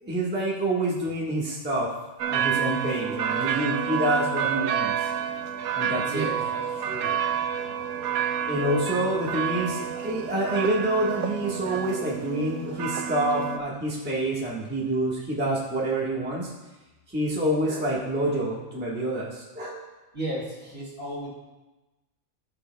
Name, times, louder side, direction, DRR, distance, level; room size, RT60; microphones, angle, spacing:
voice 1, 0.0-1.9 2.3-5.1 5.7-6.3 8.5-16.5 17.1-19.8, right 1 dB, 10° right, -6 dB, 1.3 m, -27 dB
sound 1, 2.2-13.6, right 8 dB, 90° right, 1.1 m, -29 dB
voice 2, 6.1-7.2 20.1-21.3, right 1 dB, 40° right, -5 dB, 2.3 m, -34 dB
16.5 x 6.0 x 2.2 m, 1.1 s
omnidirectional pair, 1.5 m